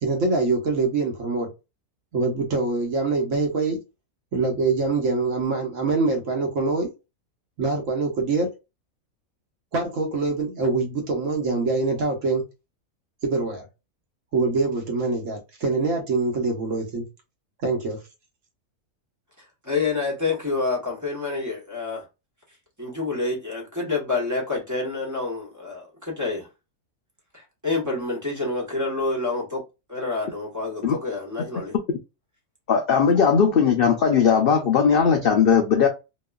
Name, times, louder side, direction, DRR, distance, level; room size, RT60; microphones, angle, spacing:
voice 1, 0.0-1.5 2.1-3.8 4.3-6.9 7.6-8.5 9.7-12.4 13.2-13.7 14.3-17.0 17.6-18.0, right 3 dB, 60° right, 1.3 m, -24 dB
voice 2, 19.4-22.1 22.8-26.5 27.3-29.6 29.9-31.7, left 3 dB, 15° right, 0.9 m, -28 dB
voice 3, 32.7-35.9, left 6 dB, 85° left, 0.5 m, -18 dB
3.0 x 2.3 x 2.2 m
omnidirectional pair, 1.6 m